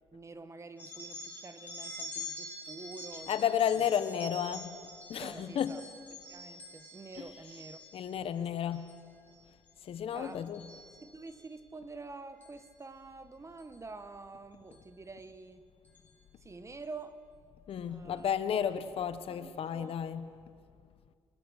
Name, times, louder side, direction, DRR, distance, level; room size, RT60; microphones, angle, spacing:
voice 1, 0.1-3.8 5.2-5.8 6.3-7.8 8.3-8.9 10.1-10.4 11.0-15.6 16.4-17.2 17.9-18.3 19.3-20.0, right 3 dB, 30° right, 10 dB, 1.5 m, -47 dB
sound 1, 0.8-8.1 8.6-9.0 9.3-9.7 10.1-11.4 12.4-12.6 13.6-13.8 14.7-14.8 15.2-15.3 15.8-16.1, left 1 dB, 15° left, 5.6 m, -46 dB
voice 2, 3.3-4.7 5.1-5.8 7.2-7.3 7.9-8.9 9.9-10.6 17.7-20.3, left 9 dB, 65° left, 11 dB, 1.2 m, -32 dB
27.5 x 20.5 x 6.5 m, 2.2 s
cardioid pair, 75°, 11 cm